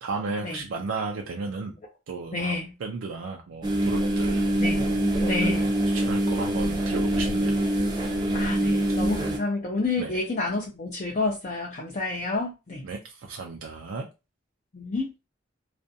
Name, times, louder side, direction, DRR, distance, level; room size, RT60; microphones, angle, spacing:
voice 1, 0.0-1.7 2.1-2.5 2.8-4.4 4.7-5.0 5.9-7.6 10.0-10.2 12.8-14.1, right 4 dB, 85° right, 2 dB, 0.4 m, -34 dB
voice 2, 2.3-2.7 4.6-4.8 5.2-5.7 8.3-12.9 14.7-15.1, left 3 dB, 35° left, -2 dB, 0.4 m, -29 dB
sound 1, 3.6-9.4, right 1 dB, 20° right, 0.5 m, -24 dB
2.4 x 2.2 x 2.6 m, 0.28 s
head